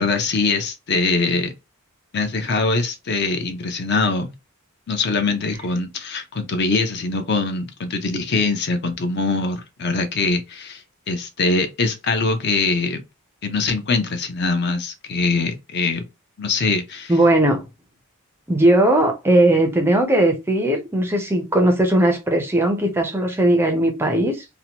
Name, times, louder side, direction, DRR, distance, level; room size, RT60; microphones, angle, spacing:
voice 1, 0.0-1.5 2.1-4.3 4.9-13.0 13.4-16.0 16.4-17.1, left 3 dB, 50° left, 0.5 m, -23 dB
voice 2, 17.1-17.7 18.5-24.4, right 1 dB, 10° right, 0.4 m, -18 dB
2.8 x 2.1 x 2.7 m
head